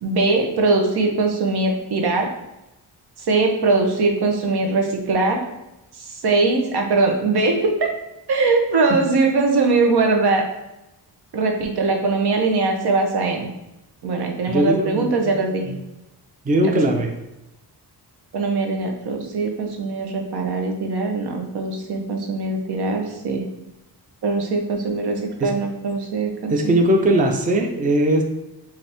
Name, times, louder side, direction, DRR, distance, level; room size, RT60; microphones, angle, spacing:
voice 1, 0.0-2.3 3.2-5.5 6.0-7.9 8.3-10.4 11.3-13.5 14.0-15.7 16.6-16.8 18.3-23.4 24.2-26.7, right 3 dB, 70° right, 3 dB, 0.9 m, -21 dB
voice 2, 14.5-15.1 16.5-17.1 25.4-25.5 26.5-28.2, right 1 dB, 20° right, 3 dB, 0.4 m, -19 dB
5.2 x 2.7 x 3.4 m, 0.94 s
wide cardioid pair, 175°, 40 cm